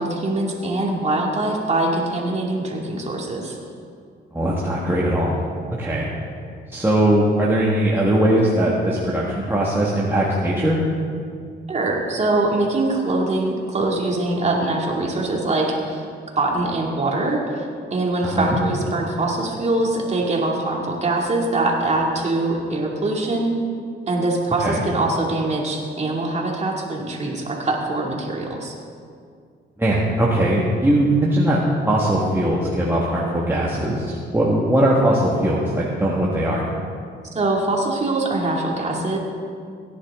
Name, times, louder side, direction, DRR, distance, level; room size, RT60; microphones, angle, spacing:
voice 1, 0.0-3.6 11.7-16.0 16.4-23.5 24.1-28.7 37.3-39.2, right 2 dB, 35° right, -1 dB, 2.6 m, -23 dB
voice 2, 4.3-5.4 5.7-6.1 6.7-10.8 18.2-18.6 24.6-24.8 29.8-36.7, right 1 dB, 10° right, -5 dB, 1.8 m, -20 dB
17.5 x 10.5 x 3.8 m, 2.3 s
cardioid pair, 90°, 20 cm